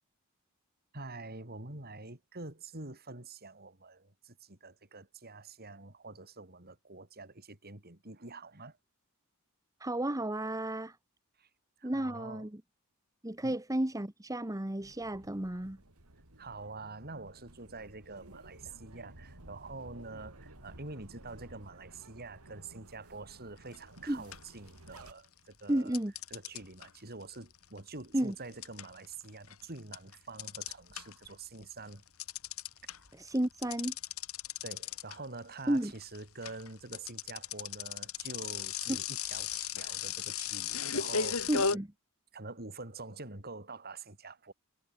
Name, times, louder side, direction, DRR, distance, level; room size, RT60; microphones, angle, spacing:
voice 1, 0.9-8.8 11.4-11.5 11.8-12.5 13.4-13.5 16.4-26.0 26.3-32.0 34.6-41.8 42.3-44.5, right 3 dB, 45° right, 4.4 m, -46 dB
voice 2, 9.8-11.0 11.8-12.6 13.2-15.8 24.1-24.3 25.7-26.1 28.1-28.3 33.1-33.9 35.7-35.9 38.9-39.0 41.5-41.9, right 1 dB, 15° right, 1.2 m, -32 dB
sound 1, 14.8-25.1, right 1 dB, 80° right, 3.9 m, -54 dB
sound 2, 23.7-24.0 24.3-25.3 25.9-31.3 31.6-41.8, left 6 dB, 70° left, 3.1 m, -36 dB
head